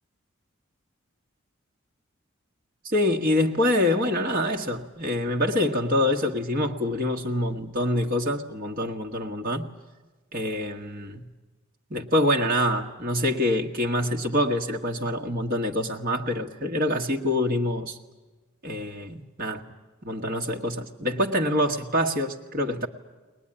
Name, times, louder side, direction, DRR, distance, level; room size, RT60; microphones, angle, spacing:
voice 1, 2.8-9.7 10.3-11.3 11.9-18.0 18.6-19.6 20.0-22.9, left 1 dB, 45° right, 1.4 m, -25 dB
22.0 x 19.5 x 10.0 m
head